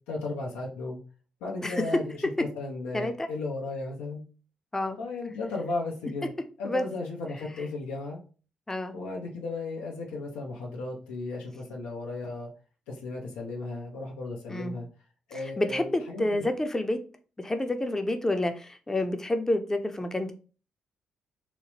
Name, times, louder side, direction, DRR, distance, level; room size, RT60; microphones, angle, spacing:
voice 1, 0.1-1.0 1.4-4.2 5.0-6.3 6.6-8.2 8.9-12.5 12.9-14.9 15.3-16.5, left 3 dB, 85° left, 0.6 m, -35 dB
voice 2, 2.9-3.3 4.7-5.0 6.6-6.9 8.7-9.0 14.5-14.8 15.3-17.0 17.4-20.3, left 1 dB, 20° left, 0.5 m, -29 dB
3.0 x 2.0 x 2.9 m
hypercardioid pair, 45°, 3 cm